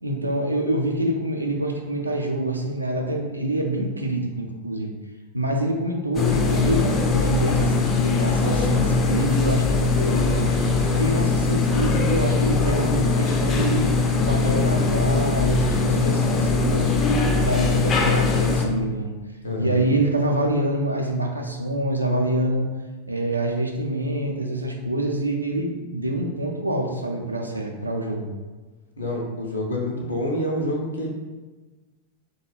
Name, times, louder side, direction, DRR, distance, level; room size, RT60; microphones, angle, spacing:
voice 1, 0.0-4.9 5.3-10.5 11.0-13.9 14.2-17.0 17.4-19.1 19.6-22.7 23.1-28.3, right 1 dB, 85° right, 1 dB, 0.3 m, -26 dB
sound 1, 6.1-18.7, left 4 dB, 25° left, 0.3 m, -21 dB
voice 2, 19.4-19.8 29.0-31.1, left 1 dB, 75° left, -2 dB, 0.5 m, -27 dB
2.3 x 2.2 x 3.0 m, 1.3 s
figure-of-eight pair, 90°, 0 cm